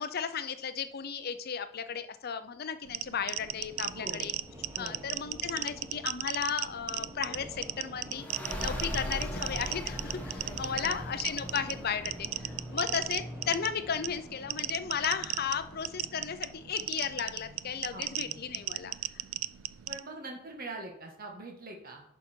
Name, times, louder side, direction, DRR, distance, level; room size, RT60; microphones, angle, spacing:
voice 1, 0.0-4.3 4.8-8.2 8.6-18.9, left 7 dB, 50° left, 11 dB, 0.6 m, -35 dB
sound 1, 2.8-20.0, right 15 dB, 80° right, 0.4 m, -37 dB
sound 2, 3.3-13.7, equal, 10° right, 1.4 m, -50 dB
voice 2, 3.8-4.3 4.7-5.1 10.4-11.1 17.9-18.4 19.9-22.0, right 2 dB, 45° right, 1 dB, 1.7 m, -44 dB
sound 3, 8.1-19.4, equal, 10° left, 1.4 m, -42 dB
10.5 x 5.9 x 4.5 m, 0.76 s
head